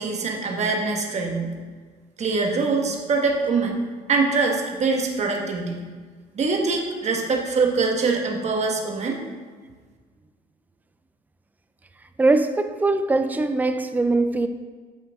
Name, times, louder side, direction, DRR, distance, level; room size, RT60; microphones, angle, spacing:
voice 1, 0.0-1.5 2.2-3.8 4.1-5.8 6.3-9.2, right 4 dB, 40° right, 1.4 m, -23 dB
voice 2, 12.2-14.5, right 2 dB, 10° right, 0.5 m, -21 dB
8.9 x 6.2 x 3.6 m
cardioid pair, 110°, 17 cm